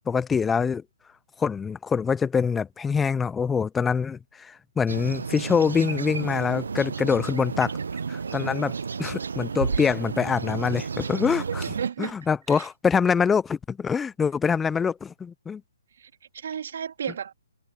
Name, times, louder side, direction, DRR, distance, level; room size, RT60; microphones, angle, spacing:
voice 1, 0.1-0.8 1.4-7.7 8.1-8.7 9.0-11.6 12.0-15.6, left 6 dB, 10° left, 0.5 m, -25 dB
sound 1, 4.9-11.9, right 5 dB, 80° right, 0.7 m, -32 dB
voice 2, 11.5-12.1 12.5-12.7 16.0-17.3, right 8 dB, 65° right, 2.0 m, -34 dB
hypercardioid pair, 145°, 0 cm